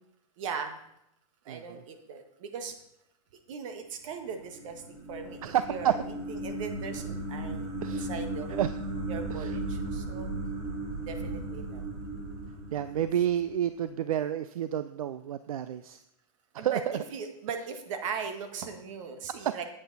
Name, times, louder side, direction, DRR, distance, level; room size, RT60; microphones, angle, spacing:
voice 1, 0.4-0.8 1.4-2.7 3.5-6.0 6.4-8.5 9.1-10.3 11.0-11.8 16.6-19.6, right 6 dB, 65° right, 7 dB, 1.6 m, -39 dB
voice 2, 1.5-1.8 5.4-5.9 7.8-8.1 8.5-8.7 9.3-9.6 12.7-16.0 16.5-17.0 19.4-19.5, right 10 dB, 85° right, 13 dB, 0.5 m, -30 dB
sound 1, 4.3-13.6, right 2 dB, 45° right, 3.3 m, -36 dB
9.1 x 8.4 x 4.1 m, 0.79 s
hypercardioid pair, 125°, 18 cm